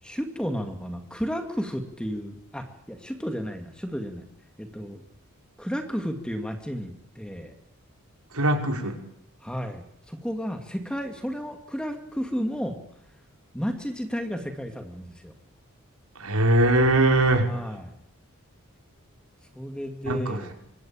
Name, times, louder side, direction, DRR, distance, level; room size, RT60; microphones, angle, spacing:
voice 1, 0.0-4.2 4.6-5.0 5.6-7.5 9.4-12.8 13.5-15.3 17.5-17.9 19.6-20.5, equal, 5° left, 6 dB, 2.4 m, -32 dB
voice 2, 8.3-9.0 16.2-17.5 20.1-20.4, right 1 dB, 85° right, 4 dB, 5.4 m, -21 dB
26.0 x 25.5 x 8.9 m, 0.74 s
head